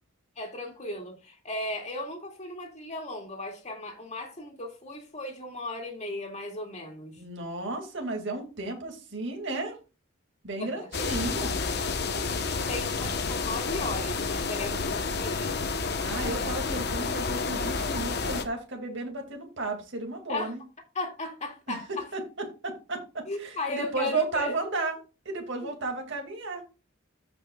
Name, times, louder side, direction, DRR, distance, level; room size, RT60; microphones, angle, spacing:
voice 1, 0.4-7.2 10.6-10.9 12.4-15.6 20.3-20.5 20.9-22.1 23.3-24.6 25.6-25.7, left 2 dB, 35° left, 2.1 m, -36 dB
voice 2, 7.2-9.8 10.4-11.6 16.0-20.6 21.7-21.8 22.1-24.9 25.3-26.6, right 3 dB, 60° right, 2.2 m, -33 dB
sound 1, 10.9-18.4, left 4 dB, 55° left, 1.0 m, -30 dB
14.0 x 5.3 x 2.3 m
head